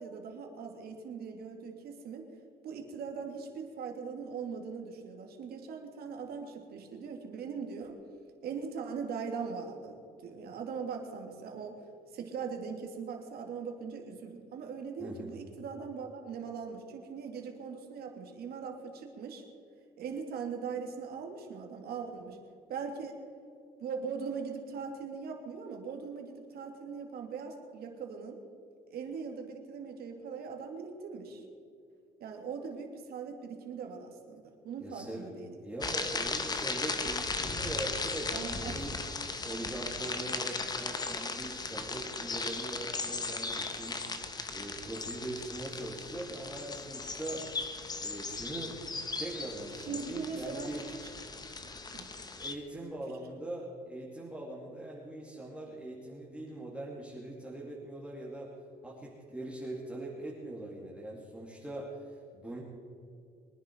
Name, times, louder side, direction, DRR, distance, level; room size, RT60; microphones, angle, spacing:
voice 1, 0.0-2.3 2.6-8.0 8.4-10.0 10.2-11.8 12.1-19.4 20.0-22.4 22.7-23.2 23.8-28.4 28.9-31.4 32.2-35.6 38.3-38.9 49.7-51.1 51.9-52.1, right 5 dB, 65° right, 3 dB, 2.6 m, -40 dB
voice 2, 34.8-35.3 35.6-39.0 39.4-47.4 48.0-48.8 49.2-50.8 52.3-58.5 58.8-62.6, right 1 dB, 5° right, -5 dB, 2.4 m, -41 dB
sound 1, 35.8-52.6, left 3 dB, 25° left, 1.2 m, -37 dB
23.0 x 10.5 x 4.6 m, 2.5 s
cardioid pair, 110°, 17 cm